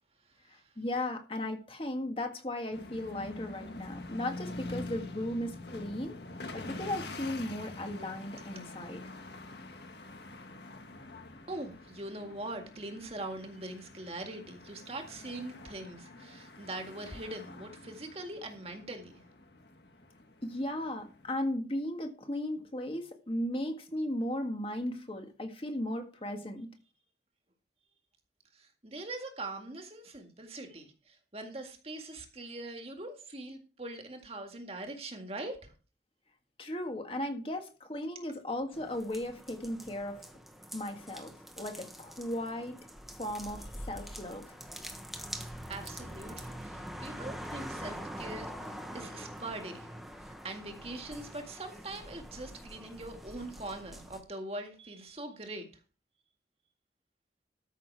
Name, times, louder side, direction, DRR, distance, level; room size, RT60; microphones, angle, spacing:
voice 1, 0.5-6.2 6.5-9.0 20.4-26.7 36.6-40.2 40.7-42.8 43.2-44.5, left 1 dB, 30° left, 1.7 m, -36 dB
sound 1, 2.7-21.3, left 2 dB, 70° left, 1.6 m, -46 dB
voice 2, 11.5-19.2 28.5-35.7 45.4-49.9 50.2-55.7, right 2 dB, 35° right, 1.9 m, -42 dB
sound 2, 38.7-54.2, equal, ahead, 1.3 m, -45 dB
13.5 x 6.3 x 4.7 m
head